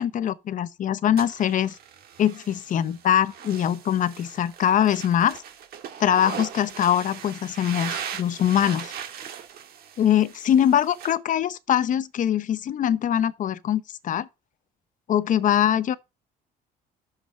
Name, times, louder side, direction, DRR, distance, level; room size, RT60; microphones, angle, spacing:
voice 1, 0.0-1.7 2.2-5.4 6.0-8.9 10.0-14.3 15.1-16.0, left 10 dB, 50° left, 0.8 m, -23 dB
sound 1, 1.2-11.1, right 8 dB, 65° right, 1.8 m, -39 dB
11.0 x 7.0 x 4.3 m
cardioid pair, 110°, 17 cm